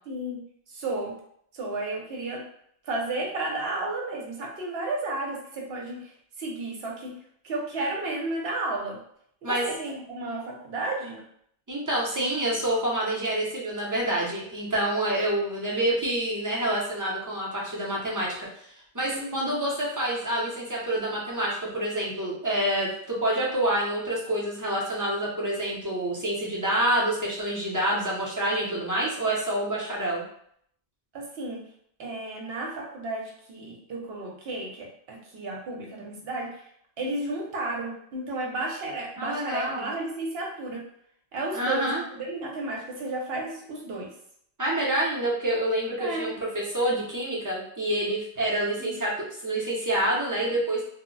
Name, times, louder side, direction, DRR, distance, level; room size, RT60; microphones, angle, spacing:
voice 1, 0.1-0.4 0.7-1.1 1.5-2.4 2.8-6.1 6.4-7.1 7.4-9.0 9.4-11.2 19.1-19.4 31.1-31.6 32.0-36.5 37.0-40.8 41.3-44.1 46.0-46.3 48.8-48.9, right 2 dB, 75° right, -1 dB, 0.9 m, -32 dB
voice 2, 11.7-30.2 39.2-39.9 41.5-42.0 44.6-49.1 49.4-50.8, right 1 dB, 25° right, -5 dB, 0.6 m, -27 dB
2.1 x 2.0 x 3.7 m, 0.67 s
omnidirectional pair, 1.1 m